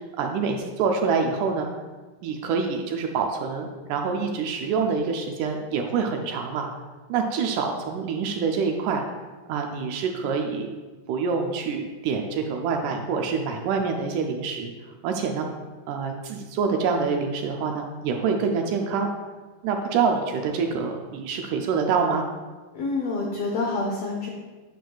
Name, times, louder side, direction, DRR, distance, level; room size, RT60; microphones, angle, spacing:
voice 1, 0.2-1.7 2.2-6.7 7.1-9.0 9.5-10.7 11.1-14.7 15.0-15.5 15.9-19.1 19.6-22.2, right 5 dB, 80° right, 3 dB, 1.9 m, -26 dB
voice 2, 22.7-24.3, left 3 dB, 85° left, -1 dB, 1.4 m, -27 dB
10.0 x 6.1 x 2.3 m, 1.3 s
omnidirectional pair, 3.9 m